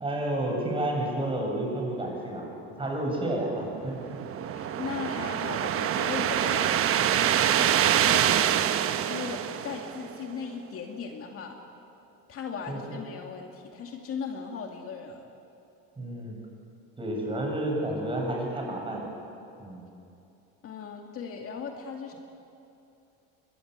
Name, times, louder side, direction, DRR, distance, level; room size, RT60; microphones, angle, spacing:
voice 1, 0.0-4.2 12.7-13.0 16.0-16.4 17.0-19.1 19.6-19.9, right 1 dB, 15° right, -1 dB, 7.6 m, -31 dB
sound 1, 3.7-10.3, right 10 dB, 45° right, 1.1 m, -25 dB
voice 2, 4.5-11.6 12.3-15.2 20.6-22.1, left 6 dB, 45° left, 2 dB, 2.3 m, -38 dB
24.0 x 21.5 x 8.2 m, 2.8 s
cardioid pair, 120°, 32 cm